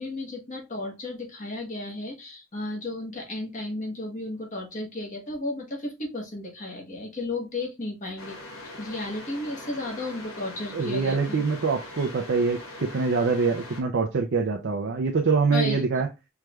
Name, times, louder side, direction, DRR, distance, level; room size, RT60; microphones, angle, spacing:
voice 1, 0.0-8.4 8.8-11.4 15.5-15.8, left 2 dB, 35° left, 1.2 m, -33 dB
sound 1, 8.2-13.8, left 2 dB, 85° left, 1.3 m, -42 dB
voice 2, 10.7-16.1, right 4 dB, 55° right, 0.5 m, -24 dB
4.6 x 3.2 x 2.3 m
head